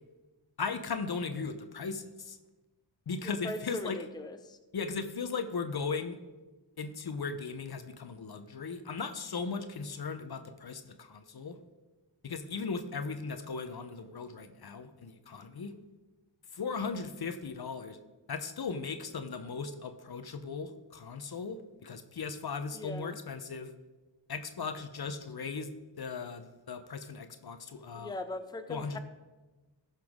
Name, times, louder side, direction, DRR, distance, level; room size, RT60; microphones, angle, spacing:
voice 1, 0.6-2.4 3.1-4.0 4.7-6.2 6.8-11.6 12.2-15.7 16.5-18.0 18.3-23.7 24.3-25.7 26.0-28.1 28.7-29.0, left 5 dB, 50° left, 9 dB, 0.9 m, -37 dB
voice 2, 3.2-4.6 22.7-23.2 27.9-29.0, left 2 dB, 10° left, 8 dB, 0.7 m, -40 dB
14.5 x 5.8 x 3.6 m, 1.2 s
cardioid pair, 45°, 47 cm